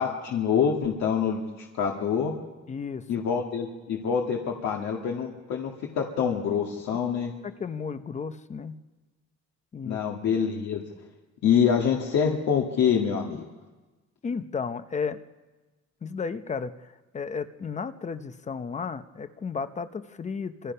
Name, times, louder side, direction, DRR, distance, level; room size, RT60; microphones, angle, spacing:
voice 1, 0.0-2.4 3.1-7.3 9.8-10.8 11.4-13.5, left 7 dB, 65° left, 0 dB, 2.0 m, -26 dB
voice 2, 2.7-3.1 7.4-8.8 9.7-10.0 14.2-15.2 16.0-20.7, left 5 dB, 25° left, 11 dB, 0.7 m, -33 dB
26.0 x 25.0 x 5.6 m, 1.2 s
cardioid pair, 175°, 29 cm